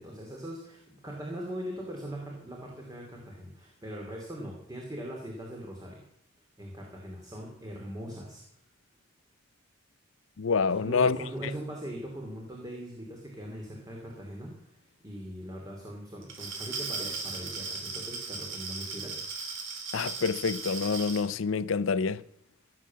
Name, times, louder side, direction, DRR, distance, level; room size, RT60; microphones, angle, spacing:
voice 1, 0.0-6.1 6.6-8.4 10.7-14.7 15.0-19.2, equal, 20° right, 2.7 m, -40 dB
voice 2, 10.4-11.2 19.9-22.2, left 5 dB, 80° left, 0.5 m, -27 dB
Glass, 16.2-21.3, right 4 dB, 70° right, 3.4 m, -37 dB
16.5 x 7.6 x 7.4 m
head